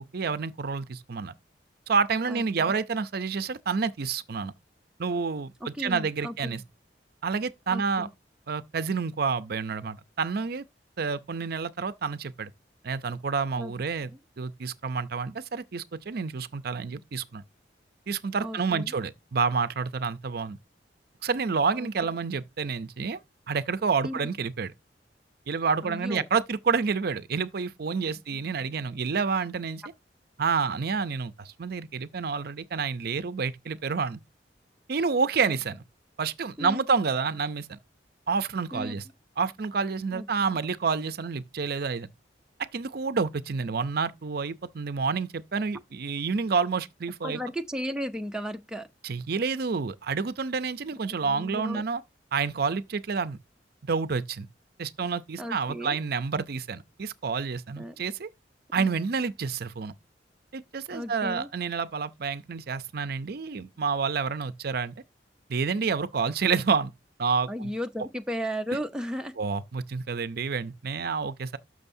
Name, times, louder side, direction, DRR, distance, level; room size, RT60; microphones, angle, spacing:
voice 1, 0.0-1.3 1.9-4.5 5.0-6.6 7.2-8.1 8.5-10.6 11.0-12.5 12.8-14.1 14.4-17.4 18.1-20.6 21.2-23.2 23.5-24.7 25.5-29.8 30.4-34.2 34.9-35.8 36.2-37.8 38.3-39.0 39.4-42.1 42.7-47.4 49.0-52.0 52.3-53.4 53.8-54.5 54.8-58.3 58.7-59.9 60.5-64.9 65.5-66.9 67.2-67.7 69.4-71.6, right 5 dB, 60° right, 0.5 m, -29 dB
voice 2, 2.3-2.7 5.6-6.6 7.7-8.1 13.6-13.7 14.1-14.2 18.4-18.9 21.8-21.9 24.0-24.3 25.8-26.3 29.2-29.3 35.4-35.6 36.6-36.8 38.7-39.0 40.1-40.6 47.2-48.9 51.2-51.8 55.4-56.0 57.8-57.9 58.8-58.9 60.9-61.5 67.5-69.3, equal, 5° right, 0.6 m, -35 dB
12.5 x 6.3 x 2.7 m
head